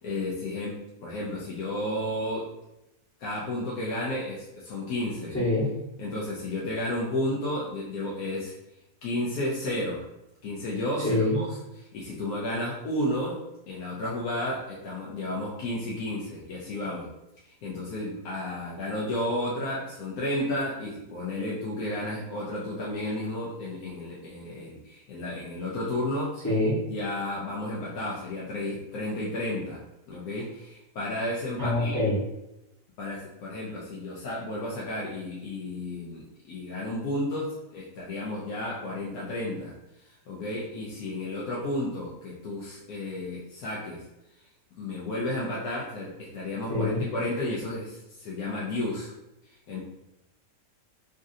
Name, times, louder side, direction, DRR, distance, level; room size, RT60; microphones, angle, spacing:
voice 1, 0.0-2.5 3.2-5.4 6.0-8.5 9.0-10.1 10.4-11.5 11.8-13.4 13.7-17.1 17.4-26.4 26.9-29.8 30.1-32.0 33.0-39.7 40.0-44.0 44.8-49.1 49.7-49.8, left 1 dB, 80° left, -5 dB, 1.1 m, -32 dB
voice 2, 5.3-5.7 11.0-11.4 26.4-26.8 31.6-32.1 46.7-47.0, left 2 dB, 15° left, -7 dB, 0.8 m, -25 dB
5.1 x 2.4 x 2.6 m, 0.91 s
omnidirectional pair, 1.6 m